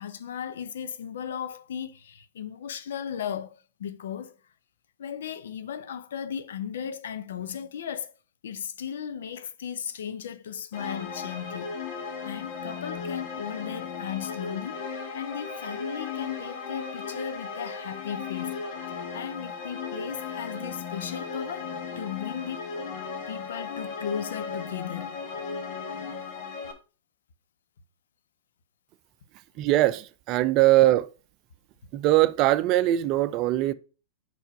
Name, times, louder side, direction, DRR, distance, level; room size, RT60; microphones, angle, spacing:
voice 1, 0.0-4.4 5.0-8.1 8.4-11.8 12.2-14.9 15.1-18.6 19.1-22.7 23.3-25.2, left 8 dB, 70° left, 0.6 m, -36 dB
sound 1, 10.7-26.7, left 5 dB, 55° left, 1.4 m, -36 dB
voice 2, 29.6-31.1 31.9-33.7, right 15 dB, 40° right, 0.5 m, -21 dB
5.4 x 4.6 x 4.5 m
hypercardioid pair, 100°, 0 cm